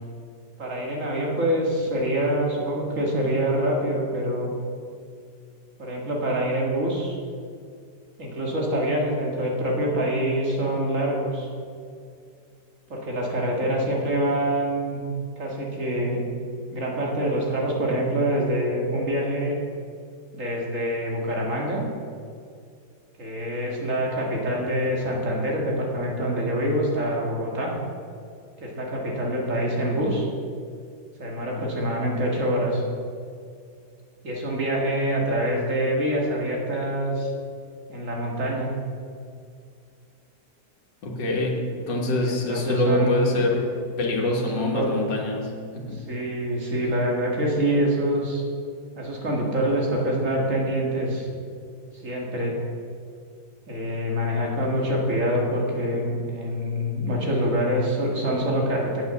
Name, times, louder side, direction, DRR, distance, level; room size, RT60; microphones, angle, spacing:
voice 1, 0.6-4.5 5.8-7.1 8.2-11.5 12.9-15.0 15.4-16.2 16.7-19.6 20.3-21.8 23.2-27.7 28.6-30.3 31.2-32.8 34.2-37.3 37.9-38.7 42.2-43.4 44.5-44.9 45.9-48.4 49.0-51.3 52.0-52.6 53.7-59.0, equal, 45° right, -2 dB, 2.4 m, -25 dB
voice 2, 41.0-43.7 44.0-45.5 45.7-46.0, left 1 dB, 85° left, -1 dB, 2.1 m, -25 dB
8.5 x 8.3 x 7.1 m, 2.2 s
omnidirectional pair, 1.8 m